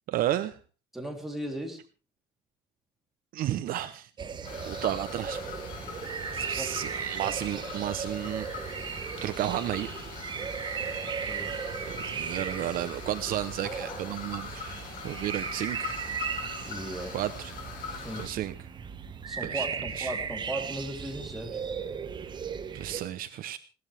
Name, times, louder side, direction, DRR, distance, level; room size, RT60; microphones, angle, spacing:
voice 1, 0.1-0.6 3.3-4.1 4.6-5.4 6.3-8.5 9.2-9.9 11.9-15.9 17.1-17.5 18.1-18.5 19.4-19.7 20.0-20.1 22.7-23.6, right 13 dB, 50° right, 12 dB, 0.9 m, -32 dB
voice 2, 0.9-1.8 6.5-6.7 11.2-11.6 16.6-17.2 17.9-18.4 19.3-21.6, right 1 dB, ahead, 0 dB, 3.3 m, -37 dB
sound 1, 4.2-23.0, right 6 dB, 25° right, 1.1 m, -37 dB
sound 2, 4.4-18.3, left 5 dB, 45° left, 7.4 m, -42 dB
20.5 x 17.5 x 3.4 m, 0.34 s
cardioid pair, 180°, 19 cm